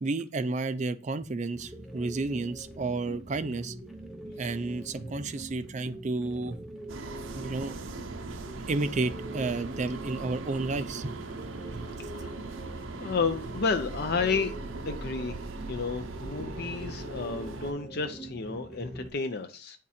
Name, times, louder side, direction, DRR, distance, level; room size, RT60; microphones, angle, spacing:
voice 1, 0.0-3.7 4.4-6.6 7.4-7.7 8.7-11.1 11.7-11.8, right 3 dB, 35° right, 0.4 m, -31 dB
sound 1, 1.5-19.1, right 1 dB, ahead, 0.7 m, -44 dB
sound 2, 6.9-17.7, right 3 dB, 75° right, 0.7 m, -40 dB
voice 2, 12.1-14.5 14.8-15.4 15.7-19.8, left 4 dB, 50° left, 0.5 m, -31 dB
8.5 x 3.6 x 4.2 m
head